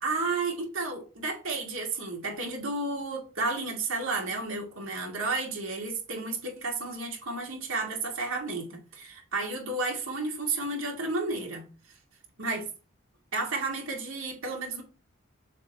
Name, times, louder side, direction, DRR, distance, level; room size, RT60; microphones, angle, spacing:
voice 1, 0.0-11.7 12.4-12.7 13.3-14.8, right 3 dB, 80° right, 2.3 m, -32 dB
7.3 x 3.1 x 4.2 m
head